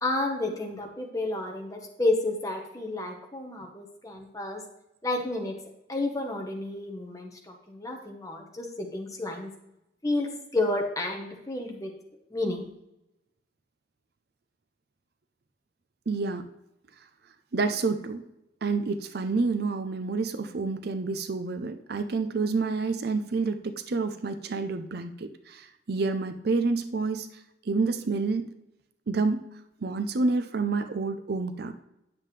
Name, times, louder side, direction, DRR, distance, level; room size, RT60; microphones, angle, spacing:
voice 1, 0.0-4.6 5.0-5.5 5.9-9.5 10.0-11.9 12.3-12.7, left 2 dB, 20° left, 2 dB, 1.2 m, -31 dB
voice 2, 16.1-16.5 17.5-18.2 18.6-28.5 29.1-29.4 29.8-31.7, right 4 dB, 55° right, 8 dB, 0.5 m, -28 dB
9.3 x 7.5 x 3.3 m, 0.87 s
head